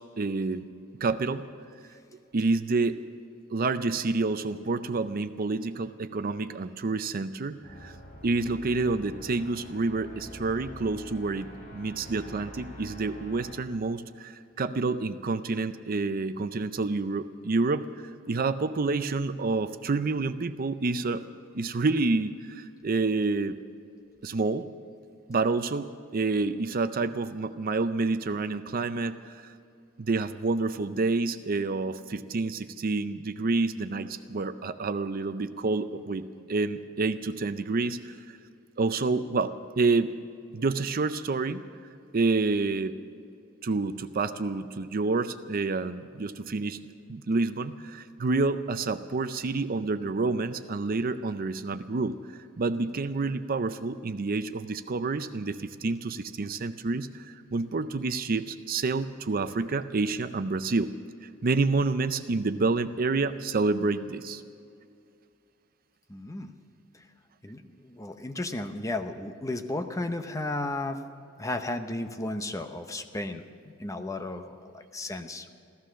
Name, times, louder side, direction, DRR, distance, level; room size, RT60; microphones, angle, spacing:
voice 1, 0.2-0.6 1.0-1.4 2.3-3.0 3.5-7.9 8.2-17.9 18.3-21.3 21.5-23.6 24.2-24.7 25.3-29.5 30.0-38.4 38.8-40.2 40.5-41.6 42.1-43.0 43.6-46.8 47.1-52.2 52.6-60.9 61.2-64.4, right 3 dB, 45° right, 11 dB, 0.5 m, -28 dB
sound 1, 7.6-13.5, equal, 35° left, 3.4 m, -46 dB
voice 2, 66.1-66.5 67.4-71.0 71.4-73.4 73.8-75.5, left 2 dB, 15° left, 7 dB, 0.7 m, -34 dB
15.5 x 14.0 x 6.3 m, 2.4 s
head